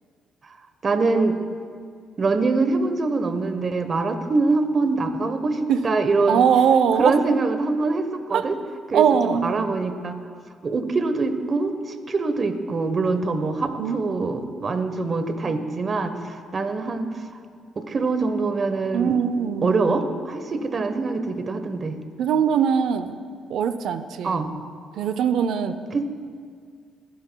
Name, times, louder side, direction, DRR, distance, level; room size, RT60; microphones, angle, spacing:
voice 1, 0.8-1.4 2.2-6.5 7.0-8.6 8.9-10.2 10.6-17.2 17.8-19.2 19.6-22.0 24.2-24.6 25.9-26.1, right 3 dB, 40° right, 9 dB, 1.0 m, -24 dB
voice 2, 6.3-7.2 8.3-8.5 8.9-9.5 13.8-14.2 18.9-19.7 22.2-23.2 23.5-24.4 25.0-25.8, right 7 dB, 75° right, 11 dB, 0.6 m, -21 dB
20.0 x 11.5 x 2.3 m, 2.1 s
cardioid pair, 90°, 0 cm